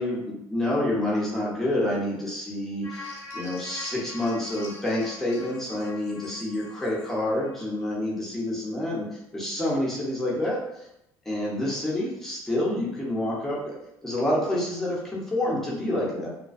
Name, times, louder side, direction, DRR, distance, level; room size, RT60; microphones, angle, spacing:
voice 1, 0.0-9.1 9.3-10.6 11.3-13.8 14.0-16.3, left 1 dB, 5° left, -6 dB, 0.7 m, -28 dB
sound 1, 2.8-7.5 7.9-8.0, left 3 dB, 35° left, 0.7 m, -43 dB
2.3 x 2.2 x 2.5 m, 0.82 s
cardioid pair, 135°, 8 cm